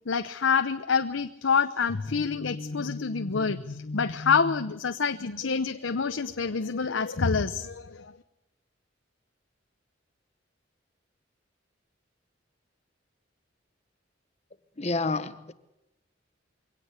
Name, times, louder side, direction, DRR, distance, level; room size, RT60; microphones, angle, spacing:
voice 1, 0.1-8.1, left 5 dB, 90° left, 0.8 m, -27 dB
voice 2, 14.8-15.5, left 3 dB, 35° left, 1.1 m, -29 dB
23.5 x 17.5 x 8.1 m
head